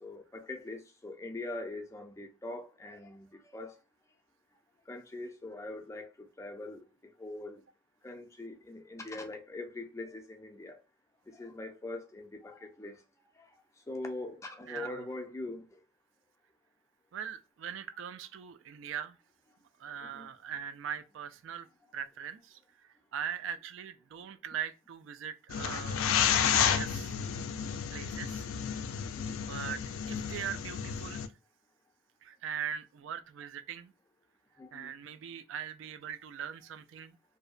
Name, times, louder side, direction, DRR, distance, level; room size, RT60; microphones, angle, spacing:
voice 1, 0.0-3.7 4.9-6.8 7.2-7.6 8.0-10.8 11.3-13.0 13.4-13.5 13.9-15.7 20.0-20.3 29.1-29.4 34.6-34.9, left 2 dB, 15° left, 0.4 m, -42 dB
voice 2, 14.7-15.0 17.1-19.2 19.8-21.7 21.9-27.1 27.9-28.5 29.4-31.2 32.2-33.9 34.7-37.2, right 8 dB, 65° right, 0.3 m, -41 dB
sound 1, 25.5-31.3, left 8 dB, 85° left, 0.3 m, -31 dB
2.6 x 2.1 x 2.4 m
head